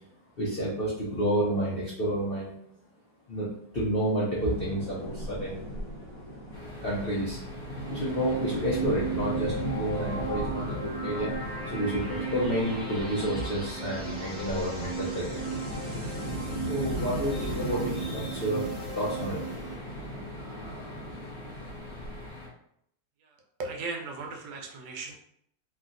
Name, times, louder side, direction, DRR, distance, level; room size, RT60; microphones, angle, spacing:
voice 1, 0.4-2.5 3.3-5.6 6.8-7.4 7.9-11.3 11.6-15.4 16.6-18.7 18.9-19.4, right 1 dB, 70° left, -7 dB, 0.5 m, -30 dB
sound 1, 4.4-22.3, equal, 50° left, 1.1 m, -38 dB
sound 2, 6.5-22.5, left 1 dB, 30° left, 1.1 m, -44 dB
sound 3, 7.2-19.8, right 5 dB, 25° right, 0.8 m, -37 dB
voice 2, 23.2-25.1, right 3 dB, 80° right, 1 dB, 1.2 m, -37 dB
3.1 x 2.6 x 2.4 m, 0.73 s
omnidirectional pair, 1.9 m